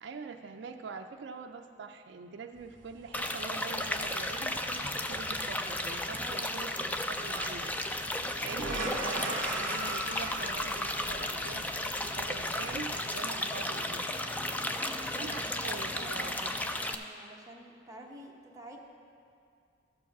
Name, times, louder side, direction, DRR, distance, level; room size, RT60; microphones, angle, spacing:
voice 1, 0.0-7.7 8.4-14.0 15.2-16.5, right 4 dB, 60° right, 4 dB, 0.4 m, -44 dB
sound 1, 2.6-13.1, right 1 dB, 45° right, 1.3 m, -41 dB
sound 2, 3.1-16.9, left 1 dB, 10° left, 0.3 m, -34 dB
voice 2, 6.1-6.6 8.2-8.6 14.7-18.8, right 1 dB, 15° right, -1 dB, 0.9 m, -49 dB
13.0 x 4.8 x 6.0 m, 2.3 s
head